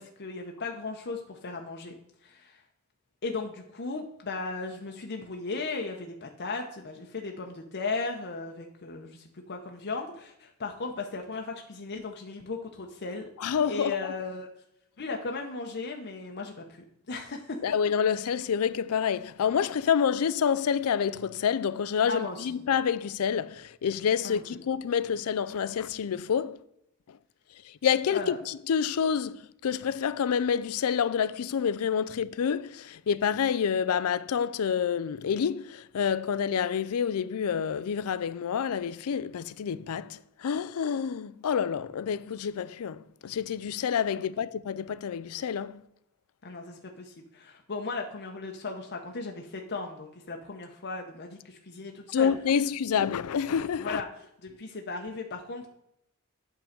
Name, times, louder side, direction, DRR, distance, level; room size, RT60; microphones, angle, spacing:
voice 1, 0.0-1.9 2.2-2.6 3.2-13.3 13.7-14.5 15.0-17.6 22.1-22.5 24.2-24.4 28.1-28.4 46.4-52.3 53.8-54.1 54.4-55.7, left 3 dB, 50° left, 0.8 m, -36 dB
voice 2, 13.4-14.1 17.6-26.6 27.6-45.8 52.1-54.0, left 7 dB, 70° left, 0.4 m, -28 dB
8.5 x 3.9 x 6.6 m
head